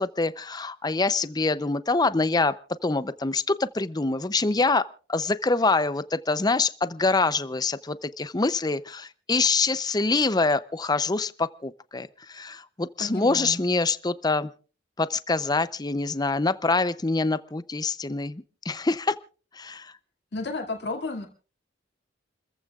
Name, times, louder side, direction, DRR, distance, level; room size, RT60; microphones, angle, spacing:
voice 1, 0.0-2.6 2.8-14.5 15.0-19.2 19.5-19.9, left 3 dB, 20° left, 14 dB, 0.6 m, -25 dB
voice 2, 13.0-13.6 20.3-21.2, left 3 dB, 60° left, 0 dB, 2.4 m, -32 dB
30.0 x 15.0 x 2.4 m, 0.38 s
head